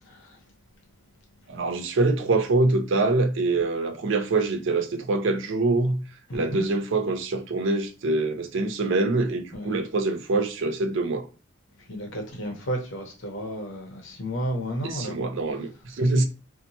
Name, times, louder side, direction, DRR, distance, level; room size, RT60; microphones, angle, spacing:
voice 1, 0.1-0.4 6.3-6.6 9.5-9.8 11.9-15.2, equal, 65° left, 0.8 m, -32 dB
voice 2, 1.5-6.0 6.3-11.3 14.8-16.2, right 2 dB, 65° right, 0.5 m, -24 dB
2.7 x 2.1 x 2.8 m
head